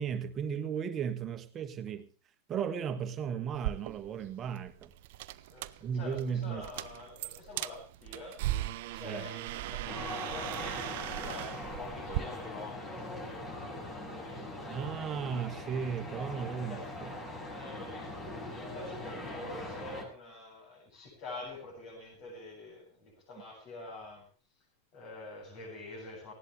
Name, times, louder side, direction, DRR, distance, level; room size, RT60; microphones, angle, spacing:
voice 1, 0.0-2.1 2.5-4.9 5.8-6.6 9.0-9.3 14.6-17.1, right 7 dB, 25° right, 10 dB, 1.7 m, -35 dB
sound 1, 3.5-12.2, right 16 dB, 50° right, 0.7 m, -38 dB
voice 2, 5.3-8.6 8.9-14.9 15.1-15.3 16.5-16.9 17.5-18.3 18.6-24.3 24.9-26.3, left 2 dB, 45° left, -4 dB, 7.9 m, -47 dB
sound 2, 9.9-20.1, left 1 dB, 25° left, 6.6 m, -41 dB
19.0 x 17.0 x 3.3 m, 0.34 s
figure-of-eight pair, 90°, 0 cm